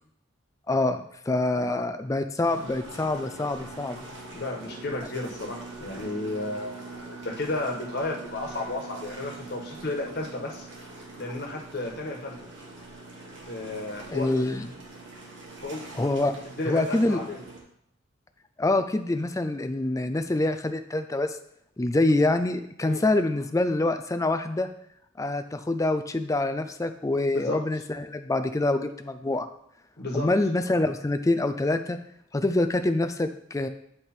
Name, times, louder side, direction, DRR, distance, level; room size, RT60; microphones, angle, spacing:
voice 1, 0.7-4.0 14.1-14.7 15.9-16.3 16.7-17.2 18.6-21.4 21.8-24.7 25.2-29.5 30.1-32.0 32.3-33.7, left 2 dB, 15° left, 9 dB, 0.4 m, -25 dB
sound 1, 2.4-17.6, right 2 dB, 65° right, 1.8 m, -43 dB
voice 2, 4.3-10.7 11.2-12.3 13.5-14.3 15.6-15.8 16.4-17.4 22.8-23.0 27.3-27.6 30.0-30.3, left 2 dB, 55° left, 0 dB, 1.5 m, -33 dB
10.0 x 3.4 x 4.4 m, 0.74 s
head